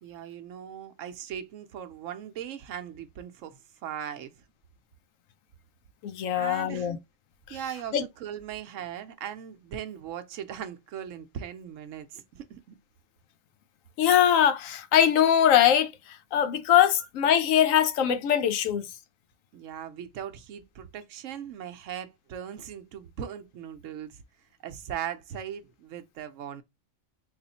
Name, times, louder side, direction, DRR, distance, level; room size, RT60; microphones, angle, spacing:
voice 1, 0.0-4.3 6.4-6.9 7.5-12.7 19.5-24.2 24.6-26.6, right 9 dB, 75° right, 1.0 m, -39 dB
voice 2, 6.0-7.0 7.9-8.0 14.0-15.9 16.3-18.8, left 10 dB, 80° left, 1.0 m, -22 dB
3.4 x 2.4 x 4.0 m
omnidirectional pair, 1.4 m